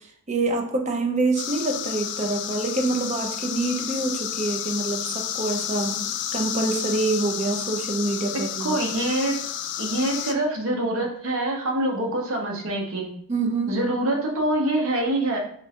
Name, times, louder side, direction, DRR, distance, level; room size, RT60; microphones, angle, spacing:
voice 1, 0.3-6.0 6.3-8.8 13.3-13.8, right 2 dB, 35° right, 3 dB, 0.6 m, -26 dB
sound 1, 1.4-10.3, left 10 dB, 55° left, 0.3 m, -31 dB
voice 2, 8.6-9.3 9.8-13.1 13.7-15.4, right 1 dB, 65° right, 0 dB, 0.9 m, -25 dB
3.6 x 2.4 x 4.2 m, 0.65 s
head